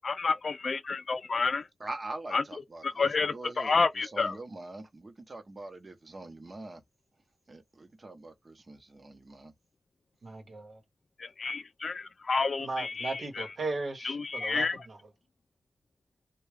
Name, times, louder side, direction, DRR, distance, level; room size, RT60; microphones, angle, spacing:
voice 1, 0.0-1.7 2.3-2.4 2.8-4.4 11.2-13.5 14.0-14.9, left 4 dB, 65° left, 0.3 m, -30 dB
voice 2, 1.8-6.8 7.5-9.5, right 2 dB, 40° right, 0.8 m, -43 dB
voice 3, 10.2-10.8 12.6-15.0, right 3 dB, 75° right, 1.1 m, -37 dB
3.5 x 2.2 x 3.3 m
wide cardioid pair, 75°, 0 cm